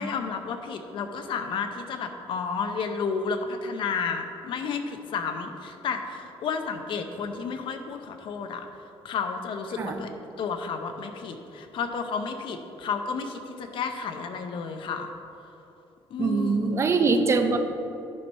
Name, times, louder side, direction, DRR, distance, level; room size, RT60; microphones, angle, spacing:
voice 1, 0.0-8.7 9.0-10.1 10.4-15.1 16.1-17.0, left 5 dB, 55° left, 6 dB, 0.7 m, -32 dB
voice 2, 16.2-17.6, right 4 dB, 25° right, 6 dB, 0.6 m, -23 dB
10.5 x 4.6 x 5.5 m, 2.8 s
cardioid pair, 160°, 10 cm